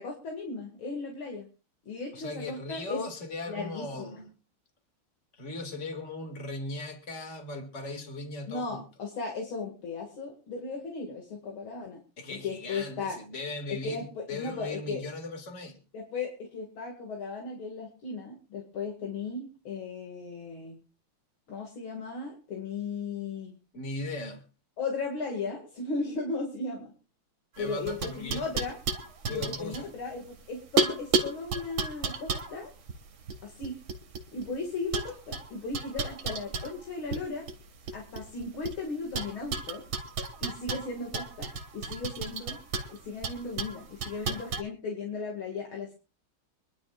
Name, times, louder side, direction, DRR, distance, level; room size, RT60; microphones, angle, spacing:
voice 1, 0.0-1.5 1.9-3.0 3.5-4.1 8.5-12.0 12.3-13.2 13.8-15.0 15.9-20.8 21.5-23.6 24.8-26.9 27.6-28.8 29.3-32.7 33.4-33.7 34.3-37.5 37.9-39.8 40.4-42.6 42.9-45.9, left 4 dB, 80° left, 3.0 m, -36 dB
voice 2, 2.1-4.3 5.3-8.8 12.2-15.8 23.7-24.5 27.6-28.4 29.3-29.9, left 2 dB, 35° left, 2.4 m, -38 dB
sound 1, 27.6-30.4 30.8-34.5 34.9-37.2 37.5-38.8 39.1-44.6, right 4 dB, 75° right, 2.4 m, -33 dB
25.0 x 11.5 x 2.4 m
omnidirectional pair, 2.2 m